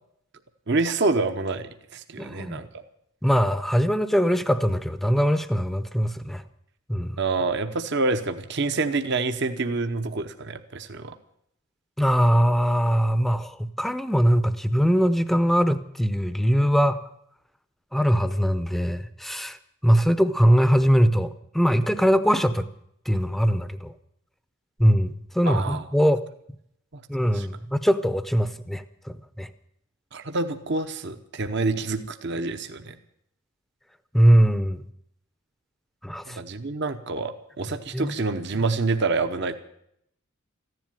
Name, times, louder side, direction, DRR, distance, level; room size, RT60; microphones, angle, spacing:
voice 1, 0.7-2.7 7.2-11.1 25.4-25.8 27.3-27.5 30.1-33.0 36.3-39.6, right 3 dB, 55° right, 8 dB, 0.9 m, -27 dB
voice 2, 2.2-2.6 3.2-6.4 6.9-7.2 12.0-17.0 17.9-19.6 19.8-22.7 23.1-23.9 24.8-26.2 27.1-29.5 34.1-34.8 36.0-36.4 37.9-38.2, equal, ahead, 13 dB, 0.6 m, -21 dB
15.0 x 10.5 x 9.0 m, 0.74 s
head